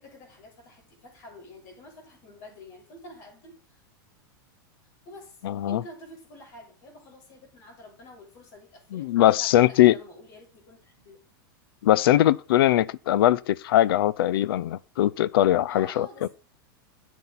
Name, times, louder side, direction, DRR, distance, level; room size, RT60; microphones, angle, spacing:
voice 1, 0.0-3.8 5.0-5.4 5.6-11.2 15.7-16.3, left 1 dB, 50° left, 6.7 m, -48 dB
voice 2, 5.4-5.8 8.9-10.0 11.8-16.3, left 13 dB, 80° left, 0.6 m, -21 dB
9.5 x 8.5 x 4.2 m
supercardioid pair, 145°, 12 cm